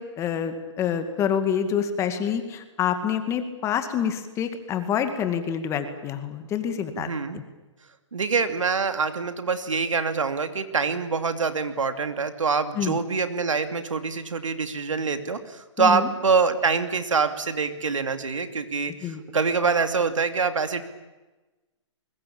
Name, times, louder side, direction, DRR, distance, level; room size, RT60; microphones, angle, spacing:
voice 1, 0.0-7.4 12.7-13.0 15.8-16.1 19.0-19.2, left 8 dB, 20° left, 8 dB, 2.2 m, -27 dB
voice 2, 6.9-7.4 8.1-20.8, right 5 dB, 90° right, 8 dB, 2.7 m, -25 dB
25.0 x 22.0 x 8.8 m, 1.1 s
hypercardioid pair, 145°, 16 cm